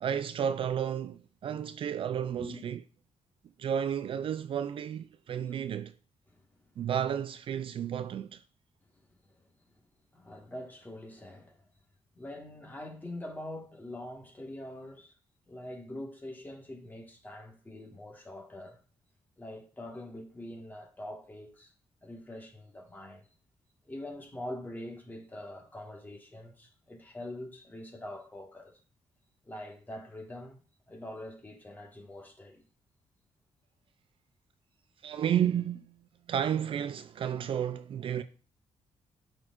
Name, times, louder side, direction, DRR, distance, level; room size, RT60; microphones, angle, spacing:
voice 1, 0.0-2.8 3.6-5.9 6.8-8.4 35.0-35.9 36.3-38.2, right 9 dB, 55° right, 0.4 m, -32 dB
voice 2, 9.3-9.7 10.1-11.7 12.1-15.1 15.5-18.8 19.4-21.7 22.0-23.3 23.9-28.8 29.4-30.6 30.9-32.6, left 1 dB, 15° left, 1.5 m, -44 dB
12.0 x 4.5 x 2.5 m
cardioid pair, 115°, 11 cm